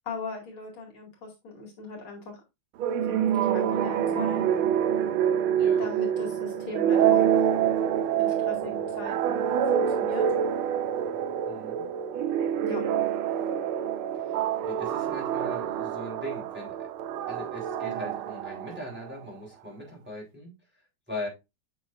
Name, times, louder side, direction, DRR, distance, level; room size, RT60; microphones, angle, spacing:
voice 1, 0.1-2.4 3.1-4.5 5.8-7.4 8.2-10.3 12.6-12.8, left 3 dB, 75° left, 0 dB, 3.3 m, -39 dB
sound 1, 2.8-19.2, right 9 dB, 80° right, 1.5 m, -26 dB
voice 2, 5.6-5.9 11.5-11.9 14.1-16.9 17.3-20.8 21.1-21.3, left 1 dB, 5° right, -2 dB, 3.4 m, -40 dB
8.8 x 6.1 x 2.5 m, 0.24 s
omnidirectional pair, 2.4 m